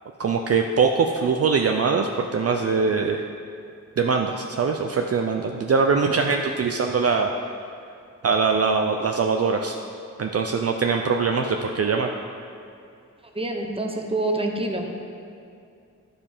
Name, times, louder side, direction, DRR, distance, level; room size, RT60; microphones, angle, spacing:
voice 1, 0.2-3.2 4.0-7.3 8.2-9.8 10.2-12.1, right 5 dB, 50° right, 3 dB, 0.5 m, -22 dB
voice 2, 13.3-15.0, right 2 dB, 20° right, 2 dB, 0.9 m, -27 dB
11.0 x 5.1 x 5.5 m, 2.5 s
wide cardioid pair, 125°, 31 cm